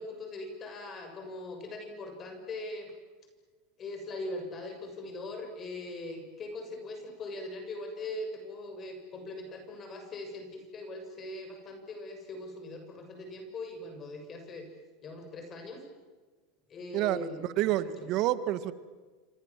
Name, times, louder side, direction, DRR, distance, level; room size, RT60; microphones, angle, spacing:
voice 1, 0.0-2.9 3.8-14.7 15.0-15.8 16.7-18.1, left 2 dB, 35° left, 5 dB, 7.1 m, -41 dB
voice 2, 16.9-17.3 17.6-18.7, right 14 dB, 55° right, 14 dB, 1.7 m, -28 dB
28.5 x 26.0 x 7.6 m, 1.4 s
hypercardioid pair, 95°, 0 cm